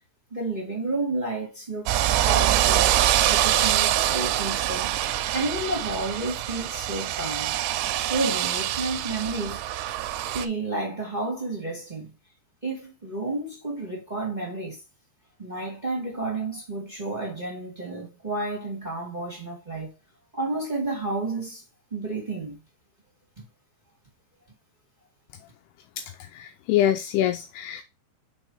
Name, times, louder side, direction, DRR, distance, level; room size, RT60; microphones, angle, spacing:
voice 1, 0.3-2.9 3.3-4.9 5.3-7.6 8.1-9.6 10.3-12.1 12.6-14.8 15.4-19.9 20.3-21.6 21.9-22.6, right 2 dB, 25° right, 1.0 m, -31 dB
sound 1, 1.9-10.5, right 13 dB, 80° right, 2.3 m, -24 dB
voice 2, 26.3-27.8, left 12 dB, 85° left, 2.5 m, -24 dB
6.2 x 3.8 x 4.0 m
omnidirectional pair, 4.9 m